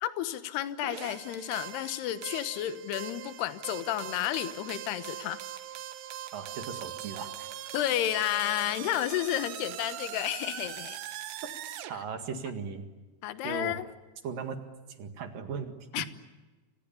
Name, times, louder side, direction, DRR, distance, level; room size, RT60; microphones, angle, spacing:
voice 1, 0.0-5.4 7.7-11.0 12.3-12.4 13.2-13.8 15.9-16.1, left 13 dB, 75° left, 11 dB, 3.2 m, -31 dB
sound 1, 0.8-11.9, right 11 dB, 80° right, 3.5 m, -41 dB
voice 2, 6.3-7.7 11.9-12.9 13.4-13.8 14.2-14.7 15.0-16.1, right 6 dB, 60° right, 7 dB, 3.3 m, -38 dB
29.5 x 26.5 x 7.0 m, 1.2 s
omnidirectional pair, 4.9 m